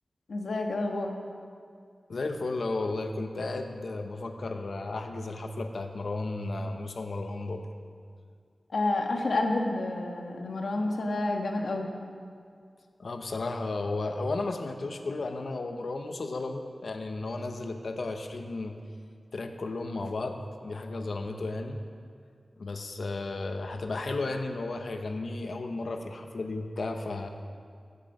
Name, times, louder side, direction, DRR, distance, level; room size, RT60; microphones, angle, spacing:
voice 1, 0.3-1.1 8.7-11.9, left 2 dB, 90° left, 2 dB, 1.4 m, -29 dB
voice 2, 2.1-7.7 13.0-18.8 19.3-21.8 22.6-27.3, left 2 dB, 70° left, 6 dB, 0.9 m, -34 dB
15.0 x 8.4 x 5.4 m, 2.2 s
wide cardioid pair, 90°, 0 cm